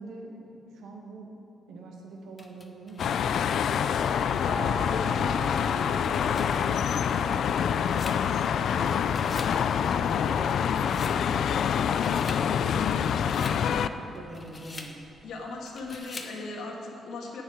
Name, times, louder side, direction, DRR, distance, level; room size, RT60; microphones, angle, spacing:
voice 1, 0.0-1.3 1.7-4.4 4.7-5.3 5.6-7.8 8.5-10.6 10.9-11.5 11.8-13.9 14.2-14.9, right 2 dB, 85° right, 0 dB, 1.9 m, -46 dB
sound 1, 2.4-3.9 4.5-4.6 5.8-8.8 9.0-9.6 9.9-11.2 11.7-12.5 12.9-13.6 14.1-15.0 15.7-16.4, left 3 dB, 25° left, 1.0 m, -46 dB
sound 2, 3.0-13.9, left 8 dB, 65° left, 0.4 m, -26 dB
sound 3, 4.5-16.0, right 3 dB, 45° right, 0.5 m, -44 dB
voice 2, 13.3-13.8 15.2-17.4, left 3 dB, 80° left, 0 dB, 1.9 m, -38 dB
17.5 x 7.1 x 5.0 m, 3.0 s
cardioid pair, 130°, 0 cm